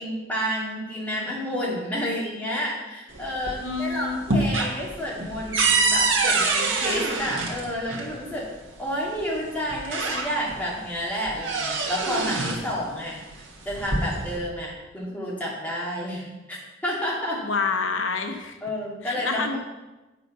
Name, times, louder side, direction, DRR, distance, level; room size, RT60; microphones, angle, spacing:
voice 1, 0.0-8.5 8.8-16.6 16.8-17.4 18.6-19.6, equal, 10° left, -5 dB, 2.1 m, -30 dB
sound 1, 3.1-3.8 4.1-8.1 9.2-9.3 9.7-10.6 11.0-12.7 13.6-14.4, right 3 dB, 80° right, 1.4 m, -25 dB
voice 2, 3.6-4.2 17.4-18.6 19.0-19.6, left 4 dB, 90° left, 6 dB, 0.9 m, -27 dB
8.0 x 5.7 x 5.5 m, 1.1 s
head